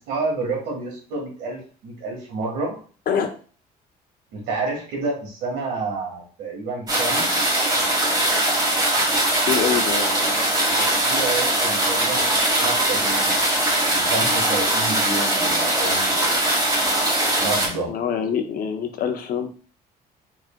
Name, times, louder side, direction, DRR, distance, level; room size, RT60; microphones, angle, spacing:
voice 1, 0.1-2.8 4.3-7.3 9.9-10.0 10.7-12.3 12.6-13.3 13.9-16.4 17.4-17.9, right 3 dB, 85° right, -1 dB, 2.1 m, -29 dB
sound 1, 6.9-17.7, right 1 dB, 25° right, 2.0 m, -21 dB
voice 2, 9.4-10.4 11.6-11.7 17.9-19.5, left 7 dB, 60° left, 6 dB, 0.7 m, -25 dB
4.2 x 3.6 x 2.5 m, 0.41 s
cardioid pair, 110°, 17 cm